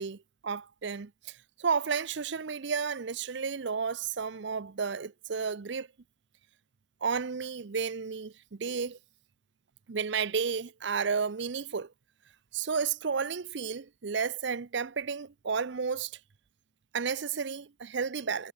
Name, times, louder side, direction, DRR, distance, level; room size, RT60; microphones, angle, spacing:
voice 1, 0.0-5.9 7.0-9.0 9.9-11.9 12.5-16.2 16.9-18.5, right 5 dB, 60° right, 0.6 m, -32 dB
head